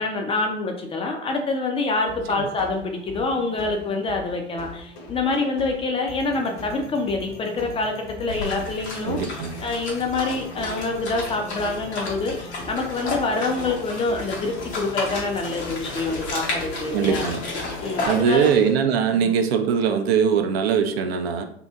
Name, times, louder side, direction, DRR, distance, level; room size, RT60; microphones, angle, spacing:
voice 1, 0.0-17.2 17.8-18.6 19.1-19.4, left 3 dB, 15° left, 2 dB, 0.4 m, -26 dB
sound 1, 2.1-18.1, left 2 dB, 50° left, 0.9 m, -39 dB
sound 2, 8.3-18.7, left 3 dB, 75° left, 1.0 m, -33 dB
voice 2, 9.0-9.5 16.9-17.4 18.1-21.5, right 7 dB, 65° right, 7 dB, 0.5 m, -21 dB
2.8 x 2.6 x 2.3 m, 0.66 s
figure-of-eight pair, 80°, 33 cm